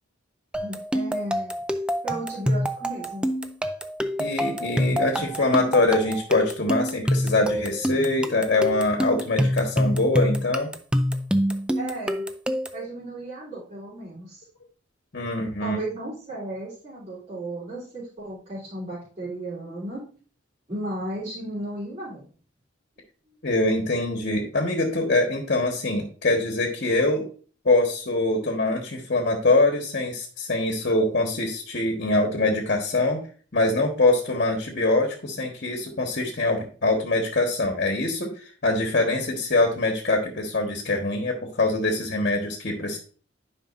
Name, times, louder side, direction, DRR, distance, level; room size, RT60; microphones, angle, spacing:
sound 1, 0.5-12.9, equal, 5° right, 0.5 m, -26 dB
voice 1, 0.6-1.6 2.0-3.2 11.8-12.3 12.7-14.4 15.6-20.0 20.7-22.3 28.4-28.5, right 1 dB, 40° right, -10 dB, 3.5 m, -35 dB
voice 2, 4.2-10.7 15.1-15.8 23.4-27.2 27.6-33.2 33.5-43.0, left 2 dB, 55° left, 2 dB, 1.4 m, -24 dB
10.0 x 5.3 x 2.6 m, 0.40 s
head